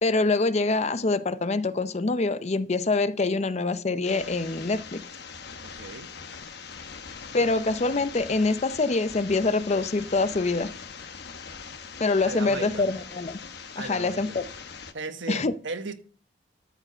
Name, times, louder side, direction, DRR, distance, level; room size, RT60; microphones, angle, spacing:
voice 1, 0.0-5.0 7.3-10.7 12.0-13.4 13.8-14.4 15.3-15.5, left 3 dB, 35° left, 0.6 m, -25 dB
sound 1, 4.0-14.9, left 5 dB, 60° left, 1.0 m, -42 dB
voice 2, 5.6-6.1 12.2-12.9 13.8-14.4 14.9-15.9, right 3 dB, 85° right, 1.3 m, -36 dB
13.0 x 4.9 x 6.6 m
head